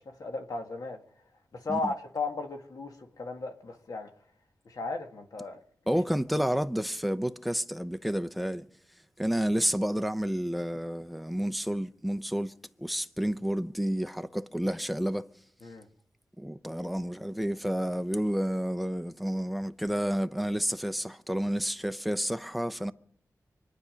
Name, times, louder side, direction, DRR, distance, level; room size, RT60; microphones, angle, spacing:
voice 1, 0.2-1.0 1.5-4.1 4.7-5.6 15.6-15.9, left 3 dB, 70° left, 1.9 m, -35 dB
voice 2, 5.9-8.7 9.2-12.5 12.8-15.3 16.4-22.9, equal, ahead, 0.7 m, -30 dB
25.5 x 9.7 x 5.1 m
cardioid pair, 70°, 7 cm